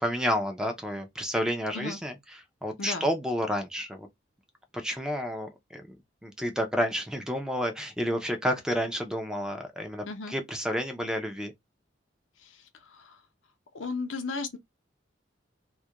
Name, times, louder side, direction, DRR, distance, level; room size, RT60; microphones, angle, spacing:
voice 1, 0.0-2.1 2.6-4.1 4.7-6.0 6.2-11.5, equal, 5° right, 0.4 m, -30 dB
voice 2, 10.0-10.3 12.4-13.2 13.7-14.6, left 3 dB, 90° left, 0.6 m, -35 dB
2.3 x 2.1 x 2.7 m
head